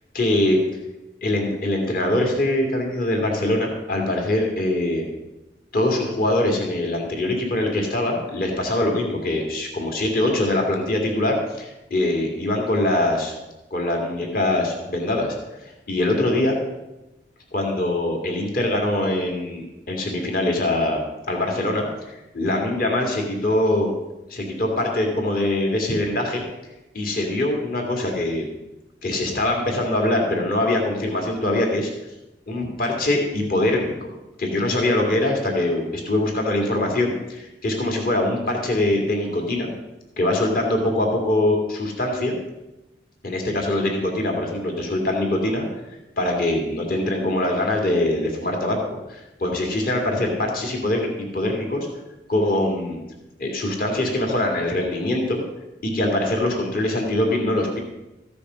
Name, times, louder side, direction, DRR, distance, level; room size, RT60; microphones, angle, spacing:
voice 1, 0.1-0.6 1.2-5.1 5.7-13.3 13.7-16.6 17.5-21.0 21.3-21.8 22.3-23.9 24.3-26.4 26.9-28.5 29.0-31.9 32.5-34.1 34.4-39.7 40.2-42.4 43.2-45.6 46.2-48.8 49.1-51.1 51.3-51.9 52.3-53.0 53.4-55.4 55.8-57.8, left 1 dB, 50° left, 1 dB, 2.3 m, -23 dB
14.5 x 6.9 x 6.2 m, 0.98 s
head